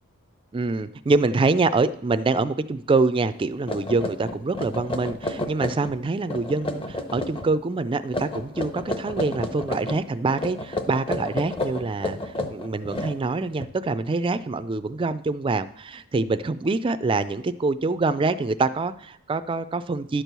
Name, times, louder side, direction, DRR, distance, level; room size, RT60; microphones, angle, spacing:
voice 1, 0.5-20.2, right 3 dB, 25° right, 13 dB, 0.3 m, -25 dB
sound 1, 3.2-3.3 3.7-6.0 6.3-7.5 8.1-10.0 10.4-13.6, left 1 dB, 25° left, 0.7 m, -31 dB
11.5 x 4.6 x 6.7 m, 0.67 s
head